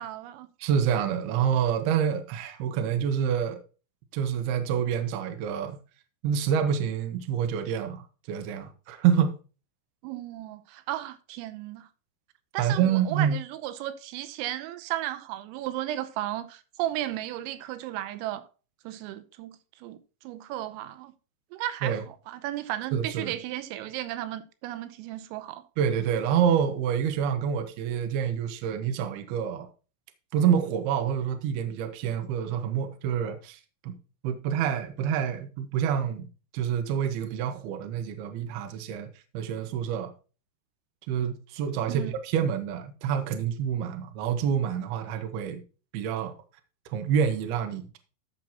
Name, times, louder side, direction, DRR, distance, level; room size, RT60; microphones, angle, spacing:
voice 1, 0.0-0.5 10.0-11.9 12.5-18.5 18.9-20.0 20.3-21.1 21.5-25.6 41.9-42.1, right 13 dB, 90° right, 3.5 m, -34 dB
voice 2, 0.6-3.6 4.1-5.8 6.2-9.3 12.6-13.4 21.8-22.0 22.9-23.4 25.8-29.7 30.3-34.0 34.2-36.3 36.5-39.1 39.3-40.1 41.1-45.6 45.9-46.3 46.9-48.0, right 8 dB, 70° right, 2.7 m, -27 dB
13.5 x 6.1 x 2.9 m
omnidirectional pair, 5.8 m